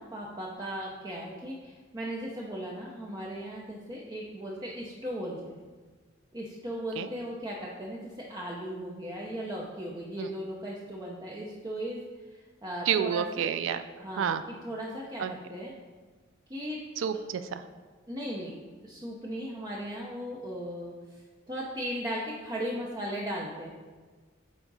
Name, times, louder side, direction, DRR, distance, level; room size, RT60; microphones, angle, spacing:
voice 1, 0.0-5.6 6.3-12.0 12.3-13.3 14.0-14.3 14.6-15.7 16.5-16.8 18.1-18.5 18.8-20.9 21.5-23.7, equal, 20° right, -3 dB, 0.7 m, -37 dB
voice 2, 12.9-13.8 14.2-14.4 15.2-15.3 17.0-17.6, right 8 dB, 75° right, 10 dB, 0.3 m, -29 dB
9.3 x 3.7 x 4.0 m, 1.4 s
head